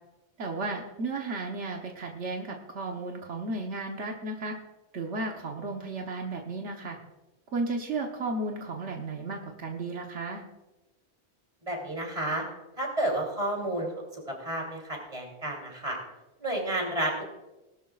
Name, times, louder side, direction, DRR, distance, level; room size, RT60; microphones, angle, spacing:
voice 1, 0.4-4.6 4.9-7.0 7.5-10.4, right 3 dB, 80° right, 1 dB, 1.4 m, -34 dB
voice 2, 11.6-12.4 12.8-13.9 14.4-16.0 16.4-17.2, right 1 dB, 30° right, 0 dB, 3.3 m, -31 dB
19.0 x 12.0 x 2.4 m, 1.0 s
omnidirectional pair, 1.2 m